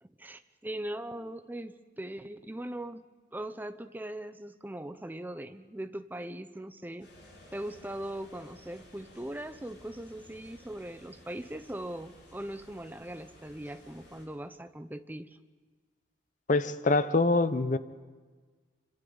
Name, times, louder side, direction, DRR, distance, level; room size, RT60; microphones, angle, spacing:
voice 1, 0.0-3.0 3.3-7.1 7.5-15.4, right 1 dB, 10° right, 9 dB, 0.7 m, -40 dB
sound 1, 7.0-14.3, left 1 dB, 80° left, 7.8 m, -55 dB
voice 2, 16.5-17.8, left 3 dB, 45° left, 13 dB, 0.7 m, -25 dB
26.0 x 25.5 x 4.0 m, 1.5 s
head